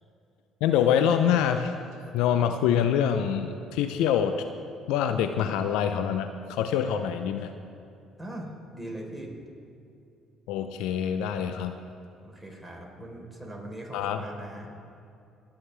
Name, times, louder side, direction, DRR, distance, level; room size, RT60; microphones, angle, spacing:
voice 1, 0.6-1.7 2.1-4.4 4.9-7.5 10.5-11.8 13.9-14.2, left 8 dB, 80° left, 8 dB, 0.6 m, -25 dB
voice 2, 8.2-9.3 12.2-14.7, right 1 dB, ahead, -1 dB, 3.9 m, -40 dB
27.5 x 9.2 x 3.4 m, 2.6 s
supercardioid pair, 70°, 0 cm